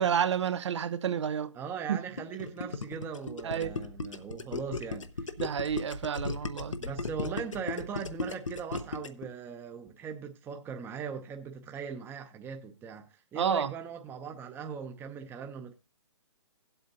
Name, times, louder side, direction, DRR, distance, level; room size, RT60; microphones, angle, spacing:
voice 1, 0.0-1.5 1.9-2.0 3.4-3.7 5.4-6.8 13.3-13.7, right 8 dB, 65° right, 0.7 m, -30 dB
voice 2, 1.5-5.3 6.8-15.7, right 6 dB, 15° right, 0.7 m, -40 dB
Gurgling, 2.2-9.3, left 3 dB, 90° left, 0.9 m, -36 dB
17.0 x 8.0 x 2.7 m
hypercardioid pair, 135°, 16 cm